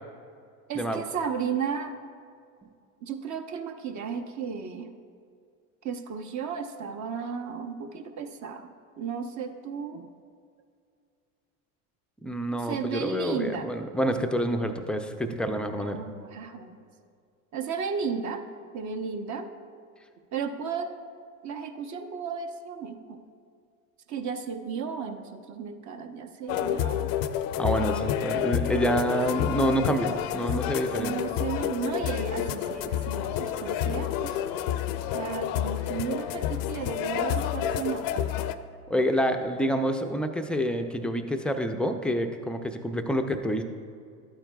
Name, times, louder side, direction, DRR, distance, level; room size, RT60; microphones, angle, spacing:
voice 1, 0.7-1.9 3.0-4.9 5.8-8.7 9.0-10.1 12.6-13.7 15.8-16.8 17.5-18.4 18.7-19.5 20.3-20.9 21.4-23.2 24.1-27.1 31.0-34.4 35.1-38.1, right 6 dB, 40° right, 6 dB, 0.8 m, -34 dB
voice 2, 12.2-16.0 27.6-31.1 38.9-43.6, equal, ahead, 5 dB, 0.4 m, -27 dB
sound 1, 26.5-38.5, left 10 dB, 50° left, 0.5 m, -29 dB
12.0 x 8.9 x 2.3 m, 2.3 s
hypercardioid pair, 85°, 45 cm